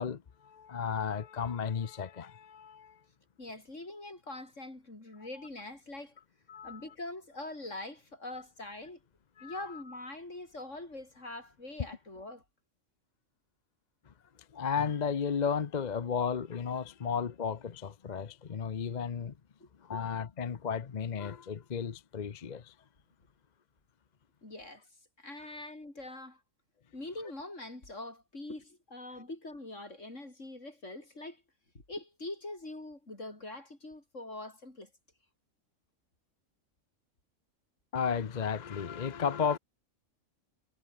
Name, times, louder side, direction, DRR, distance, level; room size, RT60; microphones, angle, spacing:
voice 1, 0.0-3.0 6.5-6.8 9.4-9.8 14.1-14.2 14.5-19.3 19.8-22.7 37.9-39.6, left 6 dB, 40° left, 0.7 m, -34 dB
voice 2, 3.4-6.1 6.6-9.0 9.4-12.4 19.6-19.7 24.4-24.9 25.2-26.4 26.9-31.4 31.9-34.9, left 2 dB, 60° left, 6.1 m, -43 dB
omnidirectional pair, 1.5 m